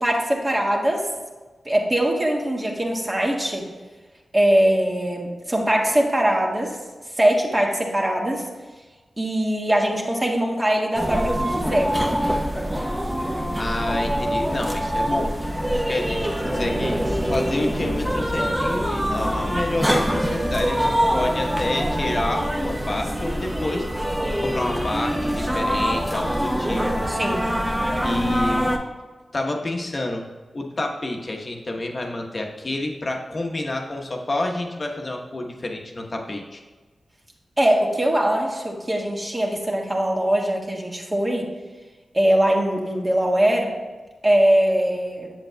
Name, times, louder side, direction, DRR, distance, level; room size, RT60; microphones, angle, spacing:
voice 1, 0.0-1.1 1.6-3.6 4.3-6.8 7.2-8.4 9.2-11.9 27.1-27.4 37.6-41.5 42.1-43.7 44.2-45.3, right 1 dB, 30° right, -1 dB, 1.5 m, -21 dB
sound 1, 10.9-28.8, equal, 10° right, 0.8 m, -24 dB
voice 2, 13.5-15.5 15.9-23.9 24.4-27.1 28.0-28.7 29.3-30.2 30.5-36.6, left 2 dB, 50° left, 2 dB, 1.0 m, -28 dB
sound 2, 16.4-22.7, right 1 dB, 45° right, 1.2 m, -34 dB
7.6 x 7.2 x 2.2 m, 1.3 s
cardioid pair, 40°, 0 cm